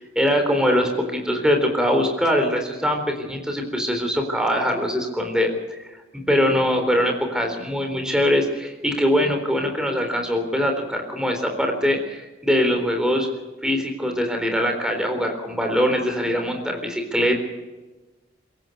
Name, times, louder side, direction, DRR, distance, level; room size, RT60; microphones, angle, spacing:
voice 1, 0.0-3.0 3.3-5.5 6.3-13.3 13.6-17.4, equal, 5° right, 4 dB, 3.9 m, -22 dB
22.5 x 17.0 x 6.9 m, 1.2 s
head